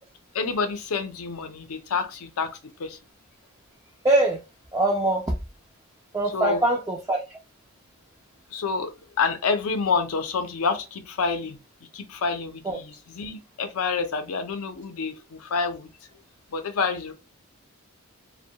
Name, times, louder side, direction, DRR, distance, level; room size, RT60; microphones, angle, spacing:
voice 1, 0.3-3.0 6.3-6.6 8.5-11.6 11.9-15.9 16.5-17.1, left 5 dB, 80° left, 0.5 m, -28 dB
voice 2, 4.0-4.4 4.7-5.4 6.1-7.4 12.6-12.8, right 2 dB, 15° right, 0.3 m, -23 dB
2.2 x 2.2 x 2.7 m
head